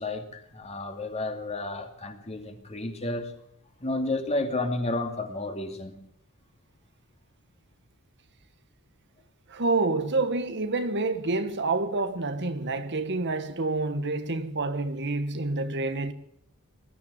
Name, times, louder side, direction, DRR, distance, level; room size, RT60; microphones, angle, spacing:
voice 1, 0.0-3.3 3.8-6.0, left 2 dB, 30° left, 2.6 m, -31 dB
voice 2, 9.5-16.1, right 3 dB, 55° right, 1.4 m, -28 dB
20.5 x 13.0 x 9.9 m
head